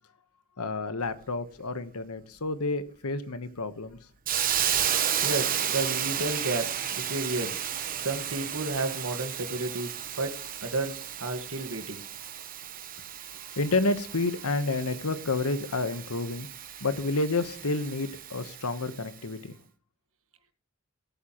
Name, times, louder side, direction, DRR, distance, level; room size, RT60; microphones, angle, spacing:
voice 1, 0.6-4.0 13.5-16.5 16.8-19.6, left 3 dB, 90° left, 11 dB, 1.2 m, -30 dB
Hiss, 4.3-19.0, right 9 dB, 40° right, 1.0 m, -33 dB
voice 2, 5.0-7.6 8.0-12.0, right 2 dB, 70° right, 8 dB, 1.7 m, -32 dB
19.0 x 8.6 x 3.1 m, 0.41 s
head